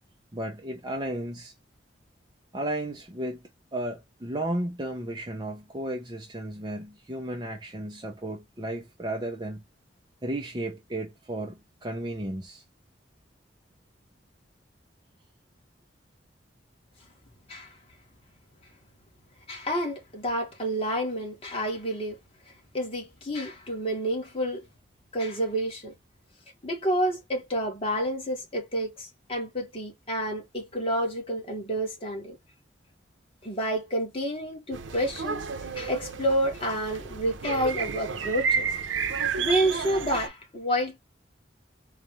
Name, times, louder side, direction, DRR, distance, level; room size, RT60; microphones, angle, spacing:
voice 1, 0.3-1.5 2.5-3.4 3.7-9.6 10.2-12.6, right 1 dB, 25° right, 0.6 m, -34 dB
voice 2, 19.5-22.2 22.7-24.6 25.1-25.9 26.6-32.4 33.4-35.4 35.7-38.7 39.4-41.0, equal, 30° left, 1.7 m, -29 dB
sound 1, 34.7-40.3, right 5 dB, 90° right, 0.6 m, -31 dB
4.0 x 2.4 x 3.1 m
head